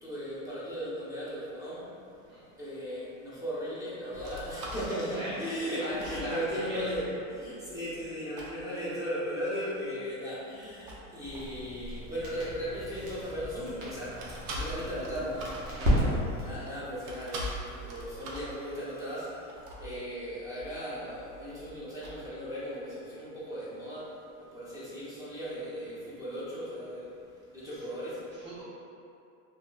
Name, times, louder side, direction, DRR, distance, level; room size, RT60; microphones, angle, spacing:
voice 1, 0.0-1.9 2.6-14.2 14.5-24.1 24.4-27.1 27.5-28.2, equal, 10° right, -11 dB, 0.7 m, -37 dB
sound 1, 4.1-8.1 8.4-8.6 10.5-13.8 14.2-22.4, equal, 50° right, 0.5 m, -44 dB
voice 2, 5.8-6.4 6.7-7.0 15.9-16.0 27.7-27.9 28.3-28.6, equal, 25° right, -8 dB, 0.9 m, -40 dB
Crackle, 11.3-16.6, equal, 90° right, 1.0 m, -33 dB
2.9 x 2.4 x 2.2 m, 2.6 s
supercardioid pair, 115°, 39 cm